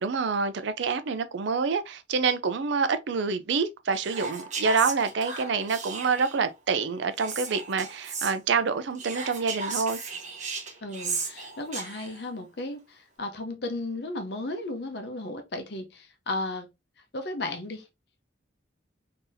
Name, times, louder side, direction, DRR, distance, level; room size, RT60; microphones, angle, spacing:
voice 1, 0.0-10.0, right 5 dB, 70° right, 0.4 m, -27 dB
Whispering, 3.9-6.5 7.2-8.3 9.0-12.2, right 4 dB, 40° right, 0.9 m, -35 dB
voice 2, 10.8-16.7 17.1-17.9, left 2 dB, 60° left, 0.7 m, -34 dB
3.8 x 2.8 x 2.6 m
head